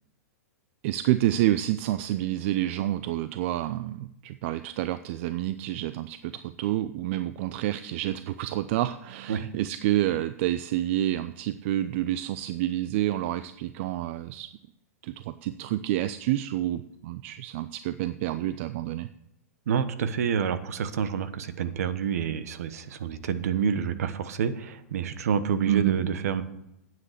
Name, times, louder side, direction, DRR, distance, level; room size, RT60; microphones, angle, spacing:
voice 1, 0.8-14.5 15.0-19.1 25.7-26.0, right 14 dB, 50° right, 13 dB, 0.5 m, -28 dB
voice 2, 19.7-26.4, right 7 dB, 70° right, 13 dB, 1.0 m, -28 dB
9.5 x 7.7 x 6.5 m, 0.83 s
hypercardioid pair, 115°, 9 cm